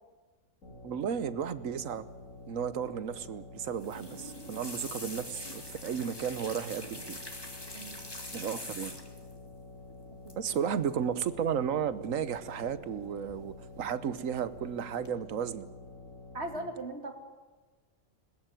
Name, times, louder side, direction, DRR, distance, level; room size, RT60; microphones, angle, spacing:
sound 1, 0.6-16.6, left 3 dB, 70° left, 5.7 m, -49 dB
voice 1, 0.8-2.1 2.5-7.2 8.3-9.0 10.4-15.7, right 8 dB, 75° right, 15 dB, 1.4 m, -33 dB
sound 2, 3.7-9.3 10.3-10.6 10.8-11.2 12.4-12.9 13.3-13.8 14.3-14.7 15.1-15.2, left 1 dB, 20° left, 2.3 m, -44 dB
voice 2, 16.3-17.1, right 2 dB, 50° right, 5 dB, 2.7 m, -38 dB
21.0 x 20.0 x 9.2 m, 1.3 s
omnidirectional pair, 1.4 m